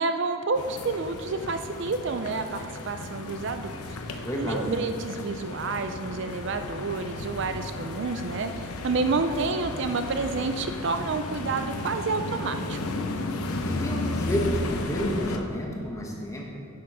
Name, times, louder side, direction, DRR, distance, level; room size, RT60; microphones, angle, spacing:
voice 1, 0.0-3.7 4.1-12.8, right 4 dB, 55° right, 8 dB, 0.4 m, -29 dB
sound 1, 0.5-15.4, left 2 dB, 85° left, 0.8 m, -34 dB
voice 2, 4.2-4.7 13.6-16.6, equal, 15° left, -1 dB, 1.1 m, -30 dB
10.5 x 6.7 x 5.4 m, 2.6 s
head